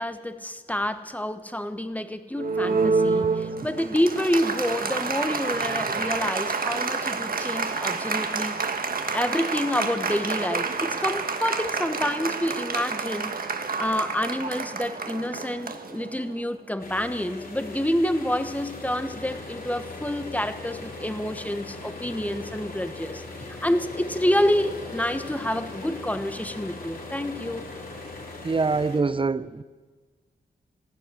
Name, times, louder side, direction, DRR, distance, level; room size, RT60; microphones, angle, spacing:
voice 1, 0.0-8.5 9.1-13.3 13.8-27.7, left 1 dB, 10° left, 10 dB, 1.3 m, -28 dB
Applause, 2.4-16.4, right 4 dB, 50° right, 1.5 m, -28 dB
sound 1, 16.8-29.0, left 3 dB, 50° left, 3.7 m, -39 dB
voice 2, 28.4-29.6, right 4 dB, 30° right, 16 dB, 0.7 m, -24 dB
15.5 x 12.0 x 6.3 m, 1.4 s
supercardioid pair, 45°, 18 cm